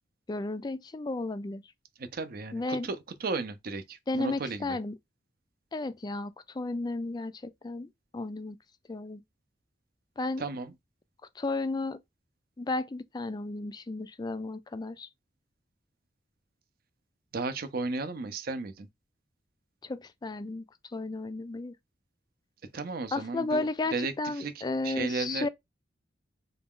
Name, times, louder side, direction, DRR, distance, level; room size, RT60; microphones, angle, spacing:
voice 1, 0.3-1.6 2.5-2.9 4.1-5.0 5.7-8.6 8.9-9.2 10.2-10.4 11.4-12.0 12.6-15.1 19.8-21.7 23.1-25.5, left 2 dB, 20° left, 0.3 m, -33 dB
voice 2, 2.0-4.8 10.4-10.7 17.3-18.9 22.7-24.5 24.8-25.5, right 3 dB, 55° right, 0.6 m, -34 dB
4.0 x 2.3 x 3.6 m
head